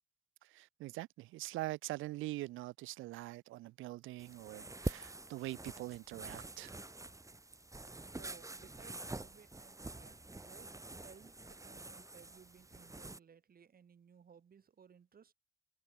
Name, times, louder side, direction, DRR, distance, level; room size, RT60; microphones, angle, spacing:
voice 1, 0.5-6.8, right 18 dB, 85° right, 0.5 m, -43 dB
sound 1, 4.2-13.2, right 2 dB, 15° right, 3.4 m, -46 dB
voice 2, 7.3-7.6 8.1-15.3, right 7 dB, 50° right, 5.2 m, -61 dB
cardioid pair, 90°, 20 cm